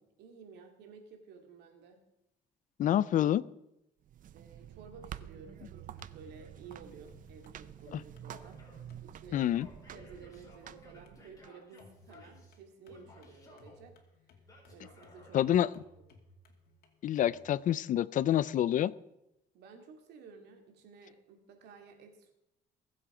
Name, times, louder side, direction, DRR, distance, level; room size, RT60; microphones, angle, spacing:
voice 1, 0.2-2.0 4.3-8.6 9.0-9.5 9.9-13.9 14.7-15.5 19.5-22.3, right 5 dB, 80° right, 4 dB, 2.6 m, -53 dB
voice 2, 2.8-3.4 7.9-8.0 9.3-9.7 15.3-15.7 17.0-18.9, left 11 dB, 50° left, 20 dB, 0.4 m, -27 dB
sound 1, 4.0-11.5, right 10 dB, 50° right, 0.6 m, -49 dB
sound 2, 5.9-17.4, left 2 dB, 65° left, 2.4 m, -61 dB
Male speech man speaking / Yell, 8.3-8.9 9.3-12.6 12.9-13.8 14.5-15.8, left 3 dB, 20° left, 4.7 m, -58 dB
21.5 x 7.7 x 4.9 m, 0.87 s
cardioid pair, 110°, 17 cm